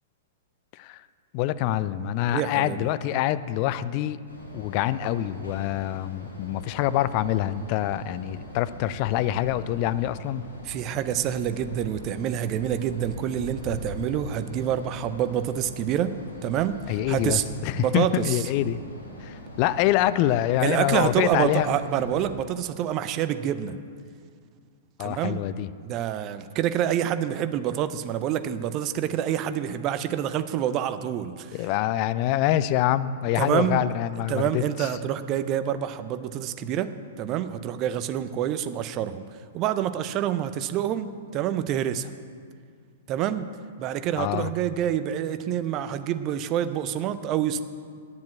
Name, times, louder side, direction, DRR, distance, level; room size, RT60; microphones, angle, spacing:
voice 1, 1.3-4.2 4.5-10.4 16.9-18.8 19.2-21.7 25.0-25.7 31.5-34.9 44.2-44.5, left 13 dB, 40° left, 15 dB, 0.4 m, -25 dB
voice 2, 2.3-2.9 10.6-17.4 17.8-18.4 20.6-23.8 25.0-25.4 25.8-31.7 33.3-33.8 34.3-39.3 39.5-42.1 43.1-43.5 43.8-47.6, right 10 dB, 30° right, 12 dB, 0.5 m, -27 dB
sound 1, 4.3-22.4, left 1 dB, 80° left, 2.2 m, -41 dB
9.7 x 7.4 x 8.5 m, 2.1 s
figure-of-eight pair, 105°, 0 cm